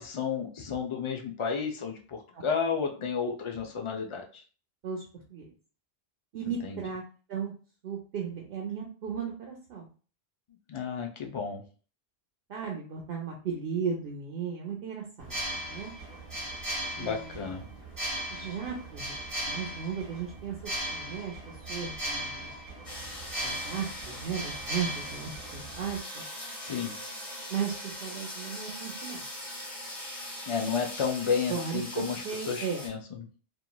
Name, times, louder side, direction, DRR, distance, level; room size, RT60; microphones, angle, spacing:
voice 1, 0.0-4.4 6.6-6.8 10.7-11.6 16.9-17.6 26.6-26.9 30.5-33.2, left 6 dB, 55° left, 3 dB, 0.3 m, -32 dB
voice 2, 6.3-7.0 7.3-7.5 7.8-9.9 12.5-15.9 17.0-17.6 18.3-19.1 19.4-22.5 23.4-26.2 27.5-29.2 31.5-32.9, right 6 dB, 65° right, 0 dB, 0.7 m, -36 dB
sound 1, 15.2-26.0, right 1 dB, 20° right, 1.1 m, -37 dB
sound 2, 22.8-32.9, left 1 dB, 35° left, 1.1 m, -41 dB
3.0 x 2.4 x 2.2 m, 0.38 s
omnidirectional pair, 1.1 m